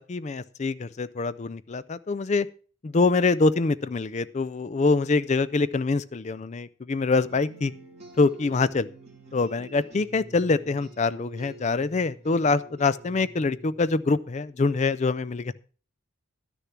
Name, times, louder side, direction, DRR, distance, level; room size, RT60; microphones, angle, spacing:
voice 1, 0.0-2.5 2.8-7.7 8.2-8.9 9.3-15.5, left 3 dB, 30° left, 16 dB, 0.4 m, -25 dB
sound 1, 7.3-14.8, right 1 dB, 30° right, 2.6 m, -48 dB
11.5 x 6.7 x 5.9 m, 0.40 s
head